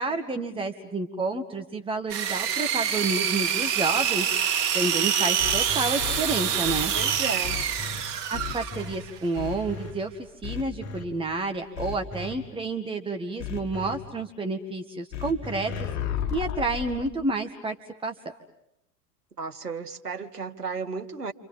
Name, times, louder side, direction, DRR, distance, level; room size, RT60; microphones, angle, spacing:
voice 1, 0.0-6.9 8.3-10.1 10.4-15.7 16.3-17.8 18.0-18.1, right 3 dB, 10° right, 5 dB, 1.8 m, -30 dB
sound 1, 2.1-9.1, right 8 dB, 50° right, 3.0 m, -26 dB
sound 2, 5.4-8.0 8.3-8.9 9.4-9.9 10.4-11.0 11.8-12.3 13.4-14.0 15.1-17.1, left 8 dB, 35° left, 5.1 m, -34 dB
voice 2, 6.9-7.6 19.4-21.3, right 5 dB, 85° right, 6 dB, 1.8 m, -34 dB
29.5 x 27.5 x 7.3 m, 0.82 s
figure-of-eight pair, 85°, 46 cm